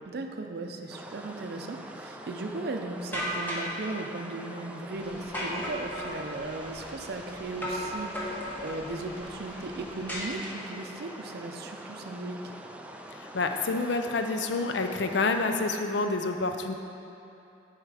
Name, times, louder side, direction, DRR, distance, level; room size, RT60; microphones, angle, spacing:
voice 1, 0.1-12.4, right 2 dB, 60° right, 4 dB, 0.5 m, -37 dB
sound 1, 0.9-15.8, right 1 dB, 5° right, 0.3 m, -45 dB
sound 2, 3.1-3.8 5.3-6.2 7.6-8.8 10.1-10.8, equal, 10° left, 1.1 m, -34 dB
air con, 4.9-10.3, equal, 30° left, 1.7 m, -49 dB
voice 2, 13.2-16.7, left 3 dB, 75° left, 6 dB, 0.5 m, -28 dB
7.5 x 4.9 x 4.8 m, 2.8 s
head